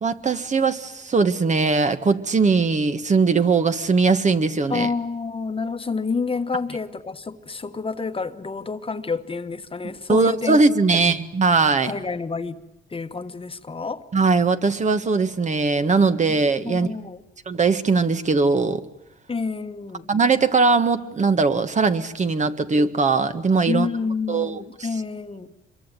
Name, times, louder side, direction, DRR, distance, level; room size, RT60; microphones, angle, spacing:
voice 1, 0.0-4.9 10.1-11.9 14.1-16.9 17.5-18.8 20.1-23.9 24.3-24.6, right 4 dB, 35° right, 1.6 m, -20 dB
voice 2, 4.7-10.6 10.9-11.2 11.8-12.6 12.9-14.0 16.3-16.4 16.6-17.2 19.3-20.1 23.7-25.5, left 4 dB, 25° left, 1.4 m, -29 dB
26.0 x 23.0 x 9.2 m
cardioid pair, 90°, 20 cm